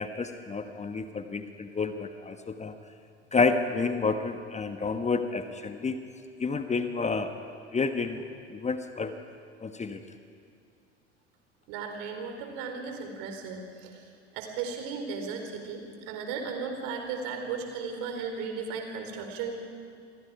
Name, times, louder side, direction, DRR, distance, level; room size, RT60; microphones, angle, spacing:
voice 1, 0.0-2.8 3.3-6.0 6.4-7.3 7.7-9.1 9.6-10.0, left 4 dB, 20° left, 8 dB, 1.3 m, -30 dB
voice 2, 11.7-19.6, right 5 dB, 55° right, 4 dB, 4.1 m, -36 dB
28.5 x 23.0 x 4.9 m, 2.3 s
figure-of-eight pair, 70°, 36 cm